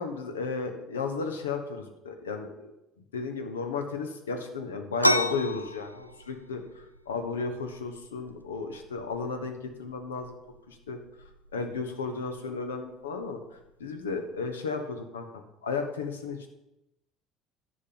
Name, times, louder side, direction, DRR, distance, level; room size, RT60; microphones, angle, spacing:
voice 1, 0.0-2.7 3.1-10.4 10.7-11.0 11.5-13.4 13.8-15.3 15.6-16.5, left 4 dB, 75° left, 6 dB, 1.0 m, -34 dB
sound 1, 5.0-14.4, equal, 90° right, 0.4 m, -35 dB
10.0 x 5.4 x 5.6 m, 0.90 s
figure-of-eight pair, 60°, 0 cm